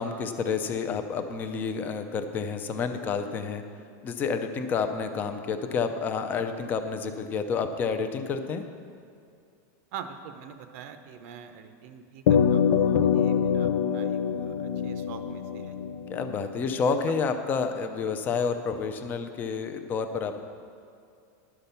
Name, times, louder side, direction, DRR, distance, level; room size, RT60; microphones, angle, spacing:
voice 1, 0.0-3.6 4.0-8.6 16.1-20.4, left 5 dB, 20° left, 8 dB, 0.5 m, -29 dB
voice 2, 9.9-15.8 16.3-16.5 16.8-17.0, right 7 dB, 50° right, 8 dB, 0.6 m, -45 dB
sound 1, 12.3-16.9, left 7 dB, 85° left, 0.5 m, -25 dB
11.0 x 5.8 x 6.7 m, 2.4 s
supercardioid pair, 170°, 10 cm